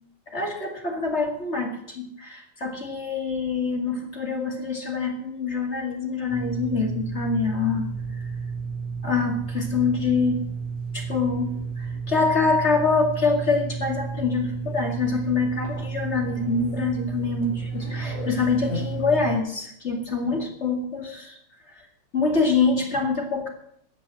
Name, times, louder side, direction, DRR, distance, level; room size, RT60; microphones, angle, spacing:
voice 1, 0.3-7.9 9.0-10.5 10.9-21.4 21.8-21.9 22.1-23.5, left 4 dB, 25° left, 2 dB, 2.0 m, -25 dB
sound 1, 6.3-19.4, right 4 dB, 55° left, 6.9 m, -32 dB
15.0 x 8.7 x 7.6 m, 0.69 s
omnidirectional pair, 3.7 m